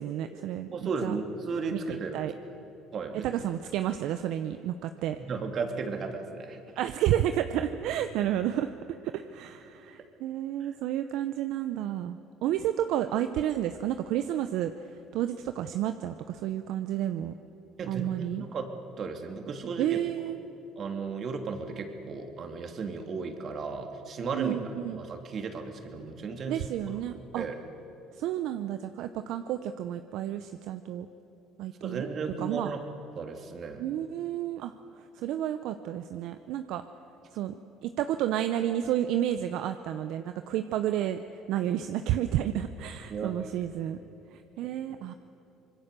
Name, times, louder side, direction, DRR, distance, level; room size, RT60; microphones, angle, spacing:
voice 1, 0.0-1.1 1.7-2.3 3.2-5.2 6.8-8.7 9.0-17.3 17.9-18.4 19.8-20.4 24.3-25.0 26.5-27.5 28.2-31.1 31.6-32.1 32.4-32.7 33.8-34.7 35.1-36.8 37.3-37.5 37.8-44.0 44.3-45.1, right 11 dB, 70° right, 9 dB, 0.8 m, -31 dB
voice 2, 0.7-2.3 2.9-3.3 5.3-6.6 10.6-10.7 17.8-20.0 20.8-24.5 24.9-27.0 27.3-27.6 31.8-32.8 33.2-33.8 43.1-43.3 44.6-44.7, right 4 dB, 50° right, 4 dB, 2.8 m, -35 dB
25.0 x 21.5 x 6.8 m, 3.0 s
supercardioid pair, 80°, 0 cm